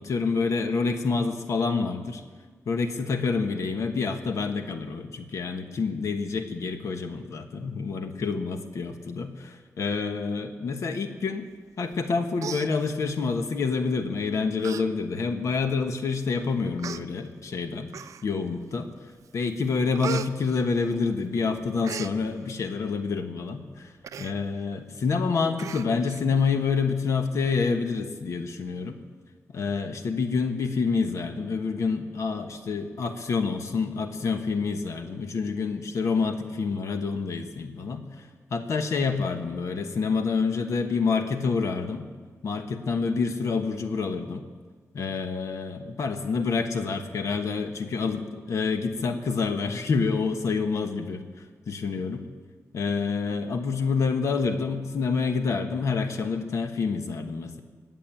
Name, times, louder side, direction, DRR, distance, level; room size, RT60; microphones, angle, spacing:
voice 1, 0.0-2.2 2.7-11.5 11.8-18.9 19.3-23.9 24.2-29.0 29.5-42.1 42.4-44.4 44.9-51.2 51.7-52.3 52.7-57.6, left 4 dB, 70° left, 6 dB, 1.2 m, -27 dB
Human voice, 11.9-12.1 12.4-13.3 14.0-14.2 14.6-14.8 15.2-15.3 16.1-16.2 16.8-17.0 17.9-18.5 18.9-19.3 19.6-21.3 21.6-22.1 24.0-24.3 24.7-24.8 25.1-25.2 25.6-26.2 26.6-26.7, right 8 dB, 80° right, 0.5 m, -37 dB
19.5 x 7.7 x 8.7 m, 1.5 s
wide cardioid pair, 125°, 5 cm